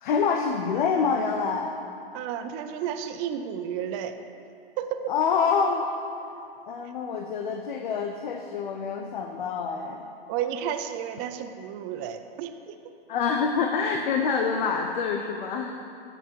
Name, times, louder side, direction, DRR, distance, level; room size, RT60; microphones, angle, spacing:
voice 1, 0.0-1.7 5.1-5.9 6.6-10.1 13.1-15.8, left 5 dB, 50° left, 4 dB, 0.9 m, -26 dB
voice 2, 2.1-4.1 4.8-5.1 10.3-12.7, right 9 dB, 20° right, 8 dB, 0.4 m, -32 dB
12.5 x 8.0 x 4.7 m, 2.7 s
hypercardioid pair, 140°, 31 cm